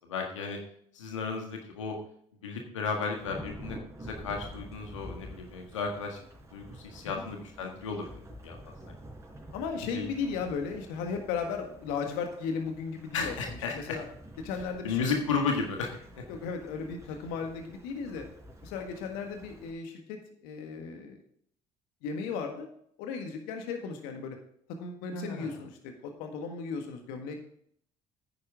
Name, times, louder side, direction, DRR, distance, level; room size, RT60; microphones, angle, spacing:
voice 1, 0.1-0.6 0.9-2.0 2.4-6.2 6.5-8.1 8.4-8.6 9.9-10.1 13.1-14.0 14.8-15.9 16.2-16.3 25.1-25.5, left 5 dB, 85° left, 2 dB, 1.6 m, -33 dB
Thunderstorm / Rain, 3.2-19.7, right 1 dB, 20° right, 4.1 m, -48 dB
voice 2, 9.5-13.3 13.7-14.0 14.4-15.0 15.4-15.5 16.3-18.3 18.6-21.2 22.0-22.7 23.0-24.4 24.8-27.4, left 5 dB, 70° left, 4 dB, 1.7 m, -36 dB
9.7 x 9.7 x 3.6 m, 0.65 s
hypercardioid pair, 55°, 16 cm